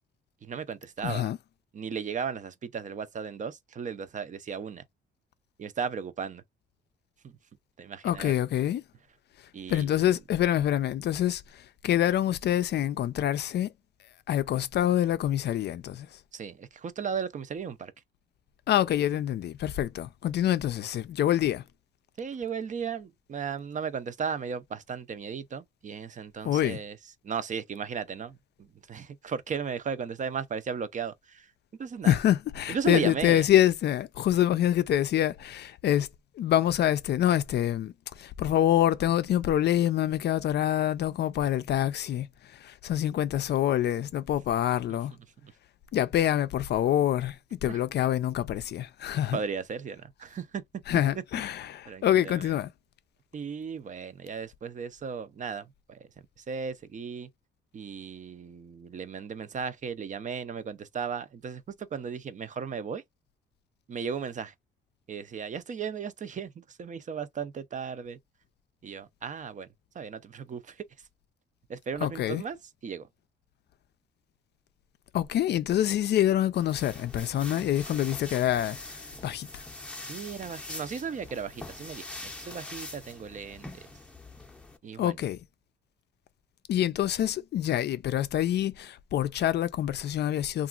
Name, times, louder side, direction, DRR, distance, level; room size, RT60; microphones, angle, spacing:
voice 1, 0.4-1.3 1.7-4.8 5.6-6.4 7.2-7.4 7.8-8.3 9.5-10.1 16.3-17.9 22.2-27.0 27.2-31.5 31.8-32.2 32.7-33.4 45.4-45.5 47.7-47.8 49.3-50.6 51.3-51.4 51.9-52.5 53.3-56.1 56.4-57.3 57.7-63.0 63.9-64.5 65.1-68.2 68.8-69.7 69.9-70.8 71.7-72.6 72.8-73.1 80.0-83.8 84.8-85.2, right 6 dB, 40° right, 0.5 m, -36 dB
voice 2, 1.0-1.4 8.0-8.8 9.7-13.7 14.3-16.2 18.7-21.6 26.4-26.8 32.0-36.1 36.4-45.1 45.9-49.4 50.9-52.7 72.0-72.4 75.1-79.6 85.0-85.4 86.7-90.7, left 11 dB, 60° left, 0.4 m, -26 dB
sound 1, 76.5-84.8, left 2 dB, 5° left, 0.6 m, -43 dB
2.8 x 2.5 x 2.4 m
cardioid pair, 90°, 20 cm